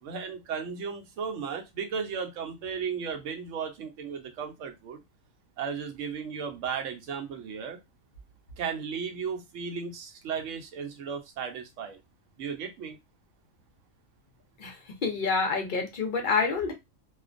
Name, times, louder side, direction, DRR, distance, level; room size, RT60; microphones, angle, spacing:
voice 1, 0.0-5.0 5.6-7.8 8.6-12.0 12.4-13.0, right 6 dB, 70° right, 0.8 m, -35 dB
voice 2, 14.6-16.7, left 4 dB, 60° left, 0.5 m, -28 dB
2.4 x 2.1 x 2.4 m
omnidirectional pair, 1.5 m